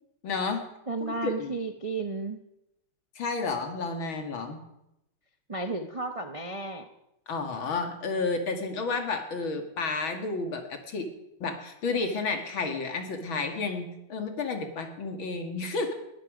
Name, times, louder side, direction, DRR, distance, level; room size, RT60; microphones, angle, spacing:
voice 1, 0.2-0.6 1.0-1.5 3.2-4.6 7.3-11.1 11.4-15.9, left 4 dB, 80° left, 5 dB, 2.8 m, -31 dB
voice 2, 0.9-2.4 5.5-6.9, right 3 dB, 35° right, 6 dB, 0.5 m, -33 dB
20.0 x 14.0 x 5.1 m, 0.85 s
omnidirectional pair, 2.2 m